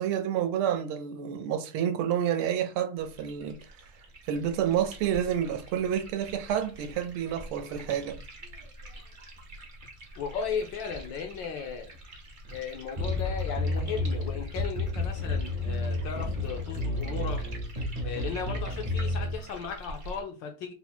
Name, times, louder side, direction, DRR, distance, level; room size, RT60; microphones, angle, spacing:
voice 1, 0.0-3.6 4.2-8.2, right 9 dB, 85° right, 1.5 m, -29 dB
sound 1, 3.0-20.2, right 1 dB, 65° right, 0.4 m, -46 dB
voice 2, 10.1-11.9 12.5-17.5 18.0-20.7, left 6 dB, 70° left, 1.2 m, -36 dB
sound 2, 13.0-19.4, left 2 dB, 40° right, 0.7 m, -31 dB
4.2 x 2.1 x 4.2 m
omnidirectional pair, 2.4 m